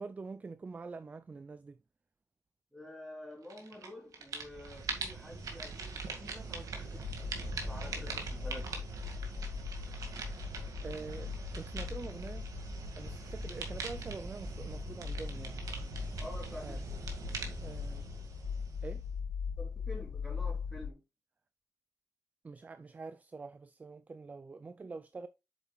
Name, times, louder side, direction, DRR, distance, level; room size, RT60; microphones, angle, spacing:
voice 1, 0.0-1.8 10.8-12.5 13.0-15.6 16.6-16.8 17.6-18.0 18.8-19.0 22.4-25.3, right 4 dB, 25° right, 0.4 m, -45 dB
voice 2, 2.7-8.7 16.2-16.8 17.3-17.4 19.6-21.0, left 1 dB, ahead, 3.4 m, -48 dB
sound 1, 3.5-3.9 4.1-19.1, right 4 dB, 65° right, 2.0 m, -42 dB
sound 2, 6.9-20.9, left 6 dB, 85° left, 0.5 m, -41 dB
8.2 x 7.2 x 2.4 m
wide cardioid pair, 170°, 6 cm